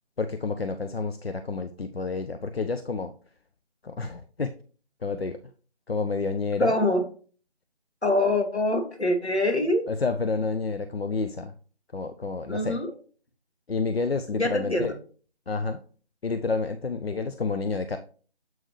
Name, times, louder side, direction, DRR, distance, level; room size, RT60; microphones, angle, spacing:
voice 1, 0.2-3.1 3.8-4.5 5.0-5.4 5.9-6.7 9.9-11.5 11.9-12.8 13.7-14.9 15.5-15.8 16.2-18.0, left 4 dB, 65° left, 8 dB, 0.6 m, -29 dB
voice 2, 6.6-7.0 8.0-9.9 12.5-12.9 14.3-14.9, left 1 dB, 85° left, 3 dB, 2.0 m, -24 dB
7.6 x 4.7 x 3.2 m, 0.40 s
figure-of-eight pair, 160°, 32 cm